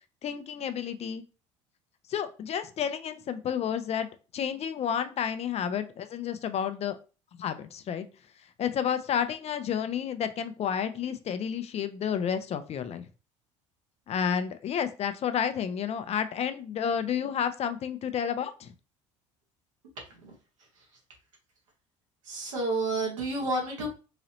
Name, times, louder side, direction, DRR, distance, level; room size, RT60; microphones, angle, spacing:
voice 1, 0.2-1.2 2.1-4.1 4.3-7.0 7.4-8.1 8.6-13.0 14.1-18.7, left 8 dB, 40° left, 10 dB, 0.5 m, -30 dB
voice 2, 22.2-23.9, right 2 dB, 80° right, -1 dB, 1.5 m, -30 dB
3.9 x 2.9 x 2.9 m, 0.33 s
hypercardioid pair, 60°, 16 cm